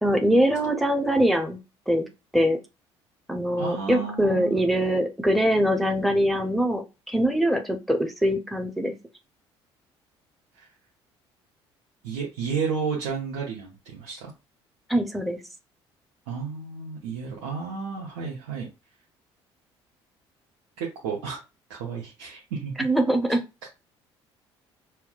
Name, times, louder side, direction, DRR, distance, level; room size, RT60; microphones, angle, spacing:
voice 1, 0.0-1.6 1.9-2.1 2.3-2.6 3.3-8.9 14.9-15.4 22.8-23.4, equal, ahead, 4 dB, 0.7 m, -23 dB
voice 2, 3.6-4.6 10.6-10.7 12.0-14.3 16.3-18.7 20.8-21.4 21.7-22.7, right 5 dB, 70° right, -3 dB, 0.9 m, -32 dB
5.7 x 2.1 x 2.4 m, 0.27 s
figure-of-eight pair, 55°, 14 cm